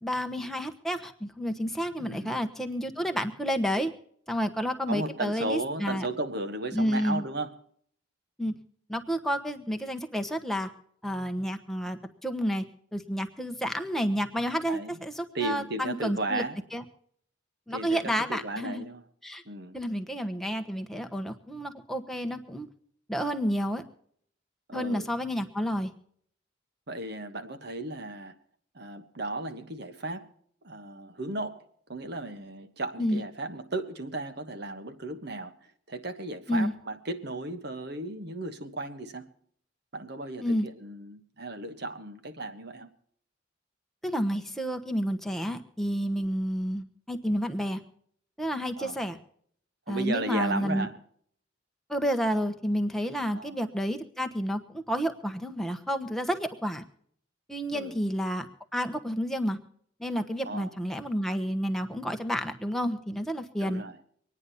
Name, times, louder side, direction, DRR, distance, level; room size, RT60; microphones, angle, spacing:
voice 1, 0.0-3.9 4.3-6.1 6.7-7.2 8.4-8.5 8.9-10.7 11.0-12.6 12.9-16.4 16.7-16.8 17.7-18.8 19.2-19.4 19.7-22.7 23.1-23.8 24.7-25.9 33.0-33.2 36.5-36.7 40.4-40.7 44.0-47.8 48.4-49.2 49.9-50.9 51.9-56.8 57.5-58.5 58.7-59.6 60.0-63.8, equal, ahead, 1.1 m, -30 dB
voice 2, 2.0-2.4 4.9-7.6 14.7-14.9 15.3-16.6 17.7-19.0 19.4-19.8 24.7-25.1 26.9-28.4 28.7-30.3 30.6-31.6 31.9-39.3 39.9-42.9 48.8-49.0 49.9-50.9 53.3-53.6 57.7-57.9 60.4-60.7 63.6-64.0, right 2 dB, 60° right, 1.4 m, -35 dB
25.0 x 9.8 x 4.2 m
head